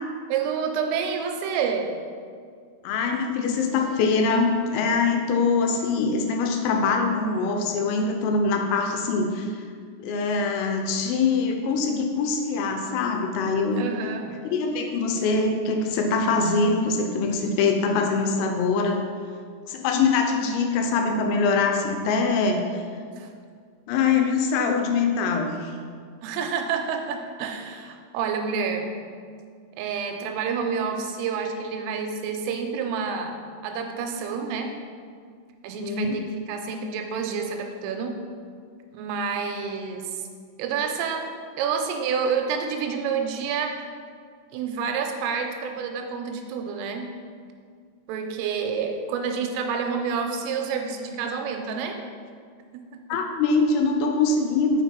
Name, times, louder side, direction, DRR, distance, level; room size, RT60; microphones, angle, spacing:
voice 1, 0.3-2.0 13.8-14.4 23.2-23.3 26.2-28.9 29.8-34.8 35.6-38.2 38.9-40.2 40.6-41.3 41.6-43.8 44.5-47.1 48.1-52.0 52.7-53.0, right 6 dB, 85° right, 4 dB, 3.1 m, -28 dB
voice 2, 2.8-9.5 10.0-13.9 14.4-19.0 19.7-22.6 23.9-25.7 35.7-36.2 53.1-54.8, left 4 dB, 85° left, 4 dB, 3.4 m, -23 dB
8.1 x 5.4 x 4.5 m, 2.1 s
omnidirectional pair, 5.9 m